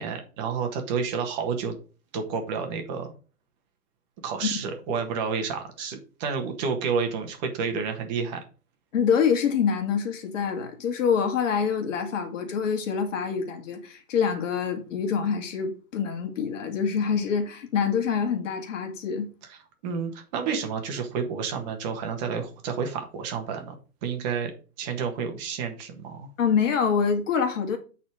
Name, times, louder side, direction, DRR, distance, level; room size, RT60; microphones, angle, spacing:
voice 1, 0.0-1.7 2.1-3.1 4.2-8.4 19.8-23.7 24.0-24.5 24.8-26.3, right 6 dB, 30° right, 1.6 m, -30 dB
voice 2, 8.9-19.3 26.4-27.8, left 6 dB, 55° left, 2.2 m, -26 dB
9.1 x 4.3 x 4.9 m
hypercardioid pair, 155°, 46 cm